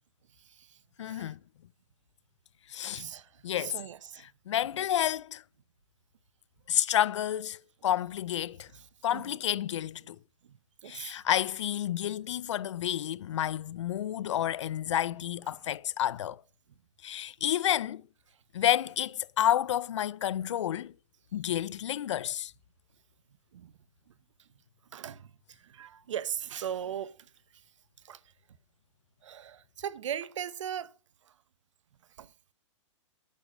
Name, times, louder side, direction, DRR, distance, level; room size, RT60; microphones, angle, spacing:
voice 1, 1.0-1.4 2.7-3.1 3.4-3.8 4.5-5.4 6.7-8.7 9.0-10.2 10.9-16.4 17.0-18.0 18.5-20.9 21.3-22.5, left 11 dB, 65° left, 0.5 m, -30 dB
voice 2, 2.9-4.2 8.7-8.8 9.1-9.4 10.5-10.6 10.8-11.2 23.5-23.7 24.9-27.2 28.0-28.2 29.2-30.9 32.2-32.3, right 9 dB, 70° right, 0.8 m, -39 dB
11.0 x 9.1 x 5.0 m
hypercardioid pair, 155°, 16 cm